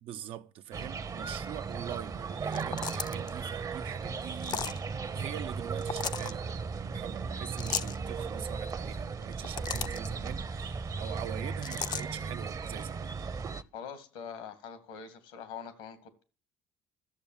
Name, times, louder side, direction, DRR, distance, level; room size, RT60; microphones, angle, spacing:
voice 1, 0.0-4.7 5.1-13.1, right 11 dB, 65° right, 0.8 m, -43 dB
sound 1, 0.7-13.6, right 5 dB, 35° right, 0.9 m, -36 dB
sound 2, 2.5-3.3 4.4-4.8 5.8-6.3 7.6-8.0 9.2-10.1 11.6-12.0, left 7 dB, 45° left, 0.6 m, -35 dB
voice 2, 13.7-16.2, left 7 dB, 80° left, 2.1 m, -44 dB
13.5 x 7.0 x 7.3 m
hypercardioid pair, 60°, 10 cm